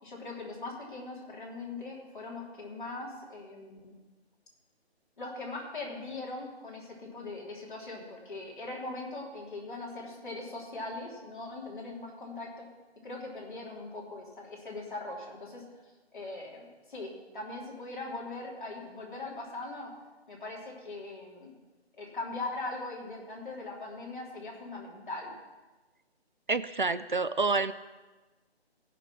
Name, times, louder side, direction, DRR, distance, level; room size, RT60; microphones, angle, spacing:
voice 1, 0.0-3.9 5.2-12.7 13.0-15.6 16.1-19.9 20.3-21.5 22.0-25.3, left 2 dB, 50° left, -3 dB, 3.3 m, -40 dB
voice 2, 26.5-27.7, right 4 dB, 50° right, 14 dB, 0.4 m, -28 dB
17.5 x 6.0 x 5.9 m, 1.2 s
hypercardioid pair, 180°, 33 cm